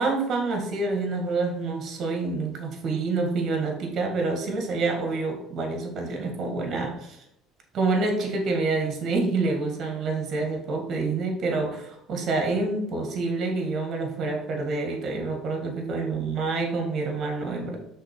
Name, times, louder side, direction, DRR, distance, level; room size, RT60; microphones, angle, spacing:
voice 1, 0.0-7.2 7.7-17.8, right 3 dB, 50° right, 2 dB, 1.9 m, -27 dB
5.7 x 3.7 x 5.3 m, 0.78 s
cardioid pair, 110°, 0 cm